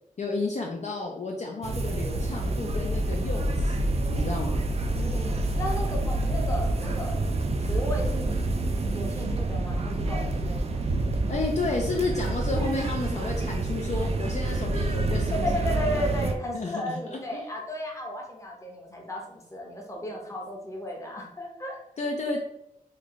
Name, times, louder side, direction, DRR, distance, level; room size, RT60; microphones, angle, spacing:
voice 1, 0.2-4.7 11.3-15.8 16.5-17.5 22.0-22.4, left 3 dB, 50° left, 0 dB, 0.4 m, -32 dB
sound 1, 1.6-16.3, right 2 dB, 45° right, 0.3 m, -27 dB
voice 2, 4.9-7.2 7.7-8.5 8.9-10.7 15.3-21.8, equal, 20° left, 0 dB, 0.8 m, -34 dB
3.2 x 2.3 x 3.8 m, 0.81 s
wide cardioid pair, 100°, 15 cm